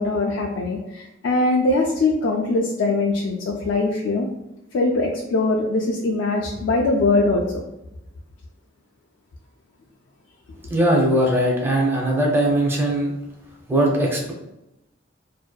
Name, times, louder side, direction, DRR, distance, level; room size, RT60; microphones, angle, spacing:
voice 1, 0.0-4.3 4.7-7.6, left 2 dB, 65° left, -2 dB, 0.3 m, -22 dB
voice 2, 10.7-13.1 13.7-14.3, right 1 dB, 10° right, -2 dB, 0.5 m, -20 dB
2.6 x 2.1 x 2.2 m, 0.89 s
head